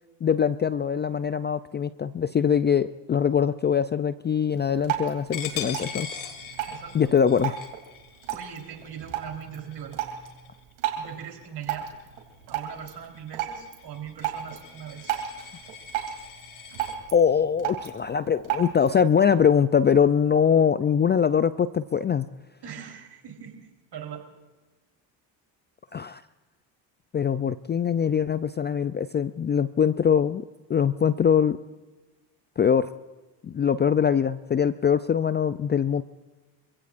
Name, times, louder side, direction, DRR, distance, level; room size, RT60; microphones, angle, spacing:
voice 1, 0.2-6.1 6.9-7.6 17.1-22.3 25.9-26.2 27.1-30.4 30.7-31.6 32.6-32.9 33.4-36.0, left 7 dB, 25° left, 13 dB, 0.4 m, -22 dB
Drip, 4.5-19.0, right 11 dB, 90° right, 3.1 m, -35 dB
Coin (dropping), 5.3-10.7 11.2-11.5 11.8-17.0, left 8 dB, 70° left, 2.2 m, -41 dB
voice 2, 6.6-7.1 8.3-10.0 10.9-11.9 12.5-15.2 22.6-24.3, right 8 dB, 55° right, 3 dB, 4.0 m, -40 dB
26.0 x 16.0 x 2.5 m, 1.2 s
supercardioid pair, 70°, 49 cm